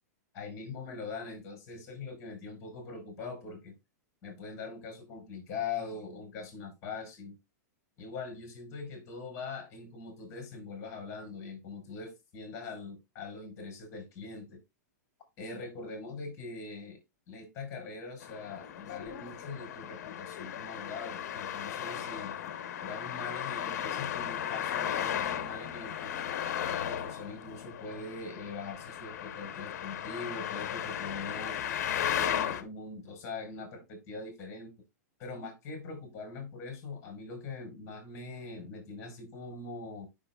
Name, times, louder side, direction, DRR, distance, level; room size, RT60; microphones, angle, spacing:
voice 1, 0.3-3.7 4.2-7.4 8.0-14.6 15.4-17.0 17.3-22.4 22.8-26.2 26.7-31.6 32.1-34.7 35.2-40.1, left 4 dB, 35° left, 5.4 m, -42 dB
Traffic noise roadway noise, 18.2-32.6, left 10 dB, 65° left, 1.2 m, -36 dB
9.9 x 5.8 x 2.4 m
hypercardioid pair, 140°, 9 cm